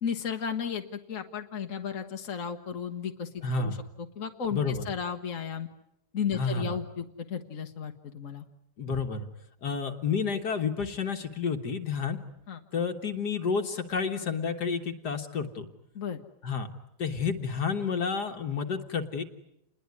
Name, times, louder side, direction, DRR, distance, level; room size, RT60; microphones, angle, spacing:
voice 1, 0.0-5.7 6.1-8.4 12.5-12.6 15.9-16.2, left 7 dB, 50° left, 3 dB, 1.6 m, -34 dB
voice 2, 3.4-3.8 4.5-4.9 6.3-6.8 8.8-9.3 9.6-12.2 12.7-15.7 16.4-16.7 17.0-19.2, left 5 dB, 75° left, 5 dB, 2.0 m, -30 dB
29.0 x 21.0 x 9.6 m, 0.81 s
omnidirectional pair, 1.8 m